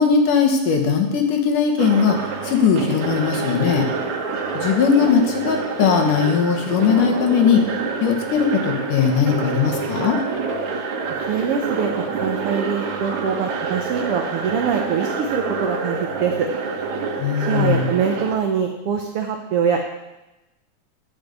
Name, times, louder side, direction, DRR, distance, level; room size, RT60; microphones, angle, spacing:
voice 1, 0.0-2.2 2.4-3.9 4.5-7.6 8.0-10.2 17.2-17.9, left 6 dB, 80° left, 3 dB, 2.8 m, -19 dB
sound 1, 1.8-18.4, right 4 dB, 70° right, 2.3 m, -27 dB
voice 2, 11.3-16.5 17.4-19.8, right 7 dB, 85° right, 3 dB, 1.2 m, -23 dB
10.0 x 5.2 x 8.0 m, 1.0 s
omnidirectional pair, 3.6 m